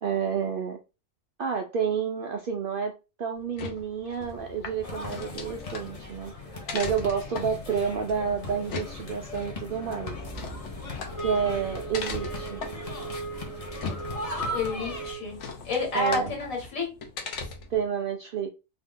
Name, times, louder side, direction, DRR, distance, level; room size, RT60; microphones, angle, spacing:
voice 1, 0.0-0.8 1.4-6.3 6.7-10.2 11.2-12.6 15.9-16.3 17.7-18.5, right 7 dB, 70° right, 0.5 m, -29 dB
sound 1, 3.4-17.9, left 4 dB, 65° left, 1.0 m, -40 dB
sound 2, 4.8-15.1, left 2 dB, 30° left, 0.8 m, -38 dB
sound 3, 11.1-15.5, right 5 dB, 15° left, 1.4 m, -39 dB
voice 2, 14.5-15.4 15.6-16.9, left 2 dB, 85° left, 1.9 m, -29 dB
2.8 x 2.7 x 3.5 m
omnidirectional pair, 1.4 m